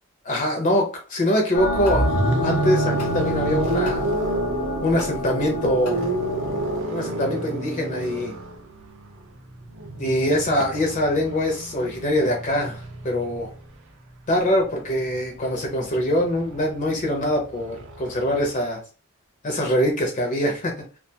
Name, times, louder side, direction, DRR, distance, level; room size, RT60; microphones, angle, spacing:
voice 1, 0.2-2.0 2.4-4.1 4.8-6.0 6.9-8.3 10.0-13.5 14.3-18.8 19.4-20.7, equal, 35° left, 2 dB, 0.5 m, -23 dB
sound 1, 1.5-6.8, left 2 dB, 75° left, 0.7 m, -29 dB
sound 2, 1.7-13.7 14.9-18.5, right 2 dB, 60° right, 0.5 m, -29 dB
2.3 x 2.2 x 2.7 m, 0.36 s
head